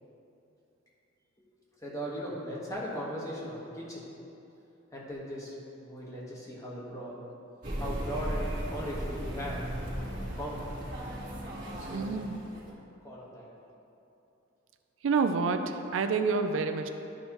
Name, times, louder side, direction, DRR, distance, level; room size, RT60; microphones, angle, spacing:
voice 1, 1.8-4.0 4.9-7.2 7.8-10.6 11.6-12.1 13.0-13.5, equal, 15° left, -5 dB, 1.4 m, -39 dB
sound 1, 7.6-12.7, equal, 45° right, 1.7 m, -36 dB
voice 2, 11.8-12.4 15.0-16.9, right 4 dB, 80° right, 7 dB, 0.4 m, -28 dB
11.5 x 5.4 x 3.0 m, 2.9 s
head